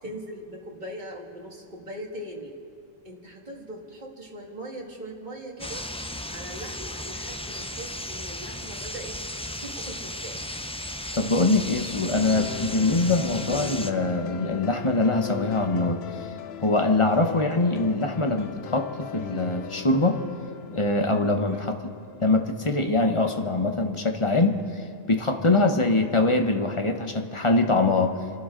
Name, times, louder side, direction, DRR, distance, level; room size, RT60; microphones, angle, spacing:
voice 1, 0.0-2.5 3.0-5.8 6.3-9.2 9.6-10.4 13.0-13.3 17.0-17.3 21.4-21.7 25.5-25.7, right 1 dB, 45° right, -1 dB, 2.2 m, -40 dB
sound 1, 5.6-13.9, left 1 dB, 10° left, 0.4 m, -35 dB
voice 2, 11.1-16.0 16.6-20.2 20.7-21.7 22.2-24.6 25.1-28.2, left 2 dB, 30° left, 5 dB, 1.0 m, -23 dB
sound 2, 12.2-24.3, left 10 dB, 75° left, 0.9 m, -39 dB
28.5 x 12.0 x 3.8 m, 2.7 s
omnidirectional pair, 1.1 m